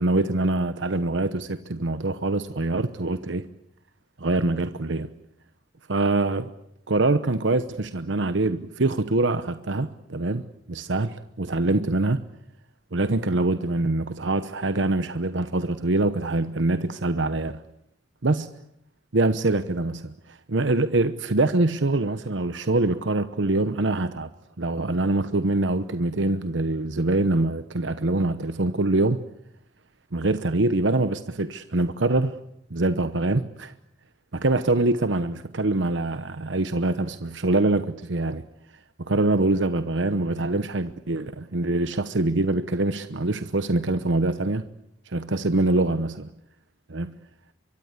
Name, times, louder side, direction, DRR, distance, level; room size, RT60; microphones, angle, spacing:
voice 1, 0.0-3.5 4.2-5.1 5.9-6.5 6.9-10.4 10.7-12.2 12.9-17.6 18.2-18.5 19.1-20.1 20.5-24.3 24.6-29.2 30.1-32.3 32.7-33.7 34.3-38.4 39.0-44.7 45.1-46.3 46.9-47.2, right 2 dB, 90° right, 1.0 m, -24 dB
24.5 x 23.5 x 8.2 m
head